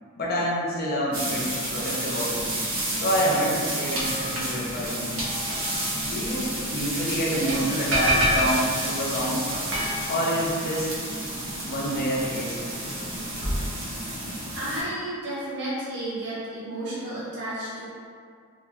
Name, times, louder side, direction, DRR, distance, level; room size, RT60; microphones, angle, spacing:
voice 1, 0.2-2.4 2.9-5.1 5.9-9.4 10.1-10.9 11.7-12.6, equal, 45° left, -5 dB, 0.6 m, -27 dB
sound 1, 1.1-14.8, right 1 dB, 85° right, 0.7 m, -29 dB
voice 2, 14.5-17.8, right 1 dB, 55° right, -9 dB, 1.0 m, -32 dB
2.9 x 2.4 x 2.3 m, 2.2 s
head